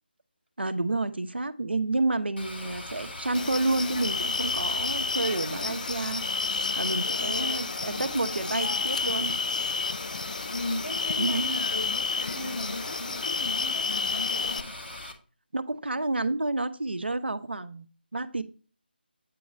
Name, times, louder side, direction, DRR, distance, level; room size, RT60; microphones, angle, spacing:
voice 1, 0.6-6.2 6.8-9.4 11.2-11.5 15.5-17.9 18.1-18.4, right 2 dB, 75° right, 0.8 m, -29 dB
sound 1, 2.4-15.1, left 1 dB, 70° left, 1.6 m, -40 dB
sound 2, 3.3-14.6, left 4 dB, 45° left, 0.3 m, -30 dB
voice 2, 7.2-8.0 8.5-8.6 10.5-14.7, left 1 dB, 85° left, 3.9 m, -37 dB
8.6 x 3.1 x 6.0 m
figure-of-eight pair, 155°, 6 cm